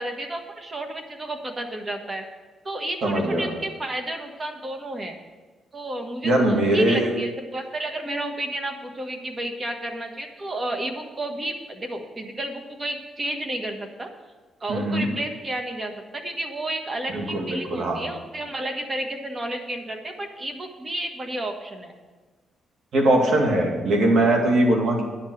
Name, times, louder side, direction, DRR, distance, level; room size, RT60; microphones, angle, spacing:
voice 1, 0.0-2.2 2.6-5.2 5.7-14.1 14.6-21.9, right 1 dB, 30° right, 4 dB, 1.4 m, -31 dB
voice 2, 3.0-3.5 6.2-7.1 14.7-15.1 17.1-18.0 22.9-25.0, right 1 dB, 65° right, 1 dB, 2.4 m, -21 dB
9.9 x 5.9 x 7.8 m, 1.3 s
cardioid pair, 100°, 0 cm